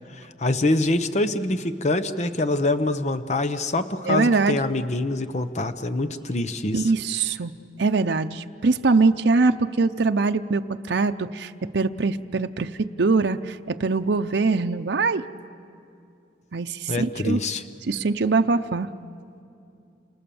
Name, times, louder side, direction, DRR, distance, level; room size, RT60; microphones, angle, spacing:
voice 1, 0.1-6.9 16.9-17.6, left 2 dB, 40° left, 10 dB, 0.8 m, -25 dB
voice 2, 4.0-4.6 6.7-7.5 7.8-12.7 13.0-15.2 16.5-17.4 17.9-18.9, right 3 dB, 80° right, 7 dB, 0.6 m, -22 dB
29.0 x 28.5 x 7.0 m, 2.5 s
head